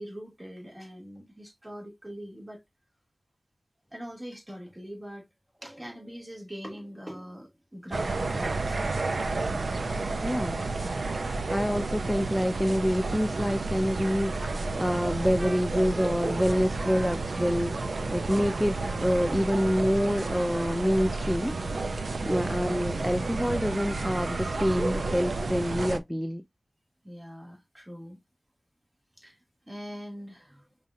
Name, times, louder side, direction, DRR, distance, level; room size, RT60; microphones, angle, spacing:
voice 1, 0.0-2.6 3.9-5.2 5.6-8.8 22.3-22.6 27.0-28.2 29.2-29.4 29.7-30.7, equal, 20° right, 2.6 m, -42 dB
sound 1, 7.9-26.0, right 3 dB, 80° right, 0.6 m, -31 dB
voice 2, 10.2-10.6 11.5-18.8 19.0-21.6 21.9-26.4, equal, ahead, 0.4 m, -27 dB
Trumpet, 14.4-14.6 14.9-22.3, right 2 dB, 40° right, 0.9 m, -45 dB
5.3 x 3.0 x 2.7 m
wide cardioid pair, 55°, 0 cm